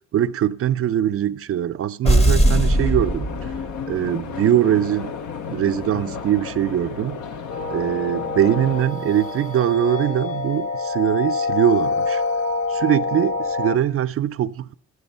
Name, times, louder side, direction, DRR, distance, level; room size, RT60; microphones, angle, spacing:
voice 1, 0.1-3.5 3.9-5.1 5.5-7.2 7.7-12.2 12.7-14.7, right 10 dB, 50° right, 0.4 m, -22 dB
sound 1, 2.0-3.9, right 1 dB, 20° left, 0.7 m, -18 dB
sound 2, 2.4-8.8, left 7 dB, 75° left, 0.7 m, -33 dB
sound 3, 7.5-13.8, left 4 dB, 50° left, 1.3 m, -26 dB
13.5 x 9.5 x 5.4 m
cardioid pair, 90°, 30 cm